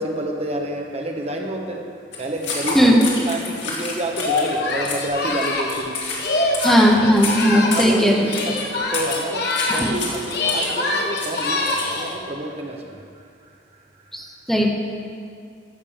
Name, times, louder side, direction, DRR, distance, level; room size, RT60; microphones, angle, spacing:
voice 1, 0.0-6.6 7.5-14.4, right 1 dB, 35° right, 1 dB, 1.2 m, -29 dB
sound 1, 2.1-12.1, left 3 dB, 85° left, 2.3 m, -30 dB
Singing, 4.1-7.9 8.2-10.0 10.2-12.1, left 2 dB, 60° left, 1.3 m, -24 dB
voice 2, 6.6-8.3 9.8-9.9 14.1-14.7, equal, ahead, -1 dB, 1.1 m, -17 dB
14.0 x 5.4 x 7.1 m, 2.2 s
head